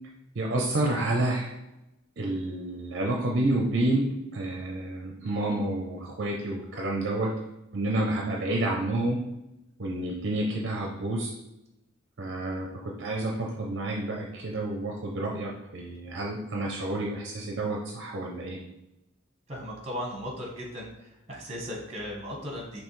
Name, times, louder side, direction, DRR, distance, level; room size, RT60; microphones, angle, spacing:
voice 1, 0.4-1.5 2.2-4.1 4.3-7.3 7.7-9.2 9.8-11.3 12.2-12.7 13.0-18.6, right 2 dB, 55° right, -1 dB, 0.5 m, -29 dB
voice 2, 19.5-20.9 21.3-22.8, equal, 30° right, -1 dB, 1.1 m, -36 dB
5.3 x 3.0 x 3.2 m, 0.94 s
head